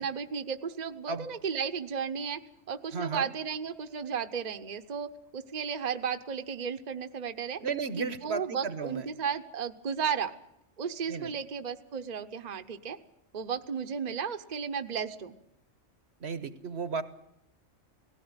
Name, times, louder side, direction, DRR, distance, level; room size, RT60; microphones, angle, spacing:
voice 1, 0.0-2.4 2.7-7.6 8.0-10.3 10.8-13.0 13.3-15.4, right 6 dB, 40° right, 8 dB, 0.9 m, -34 dB
voice 2, 2.9-3.3 7.6-9.1 11.1-11.3 16.2-17.0, right 5 dB, 60° right, 13 dB, 1.3 m, -34 dB
18.5 x 16.5 x 9.6 m, 0.82 s
omnidirectional pair, 1.2 m